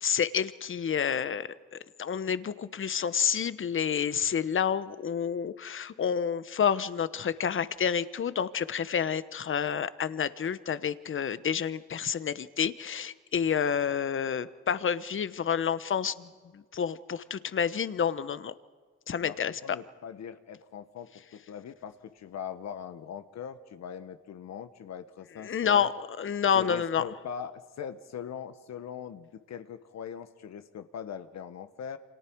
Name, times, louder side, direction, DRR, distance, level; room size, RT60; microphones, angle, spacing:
voice 1, 0.0-1.5 2.0-16.3 16.5-18.5 19.1-19.5 25.4-25.9 26.2-27.0, left 7 dB, 40° left, 14 dB, 1.1 m, -29 dB
voice 2, 19.2-25.9 26.5-32.0, left 8 dB, 60° left, 10 dB, 1.3 m, -41 dB
29.5 x 26.5 x 4.7 m, 1.5 s
cardioid pair, 90°, 30 cm